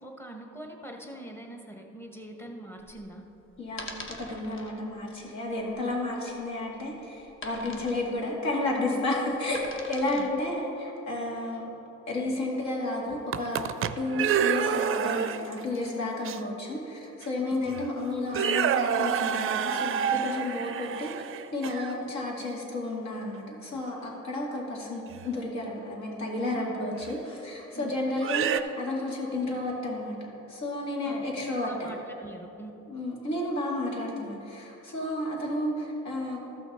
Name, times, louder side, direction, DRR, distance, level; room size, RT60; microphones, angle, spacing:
voice 1, 0.0-3.2 7.6-7.8 10.1-10.3 20.2-20.4 27.7-27.8 31.0-31.3 31.6-32.7, right 1 dB, 10° left, 2 dB, 1.2 m, -43 dB
sound 1, 2.8-10.4, left 2 dB, 40° left, 1.1 m, -44 dB
voice 2, 4.2-11.6 12.1-21.1 21.5-31.9 32.9-36.4, left 2 dB, 65° left, -2 dB, 2.3 m, -32 dB
sound 2, 13.1-15.6 16.2-16.4 17.2-17.3 17.7-17.9 18.3-21.9 25.1-25.3 27.0-27.1 28.2-28.6, right 8 dB, 45° right, 0.4 m, -28 dB
14.0 x 6.1 x 4.3 m, 3.0 s
cardioid pair, 90°, 30 cm